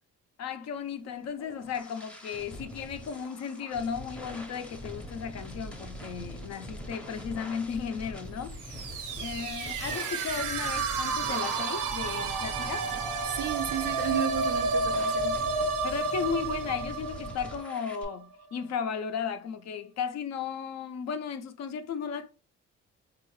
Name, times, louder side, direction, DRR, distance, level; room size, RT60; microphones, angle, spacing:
voice 1, 0.4-8.9 9.2-12.9 15.8-22.3, left 6 dB, 60° left, 0.5 m, -35 dB
sound 1, 1.1-18.0, equal, 5° left, 0.6 m, -43 dB
sound 2, 8.5-18.2, right 4 dB, 85° right, 0.7 m, -31 dB
voice 2, 13.3-15.4, right 9 dB, 35° right, 0.4 m, -33 dB
3.7 x 2.4 x 3.0 m
cardioid pair, 90°, 30 cm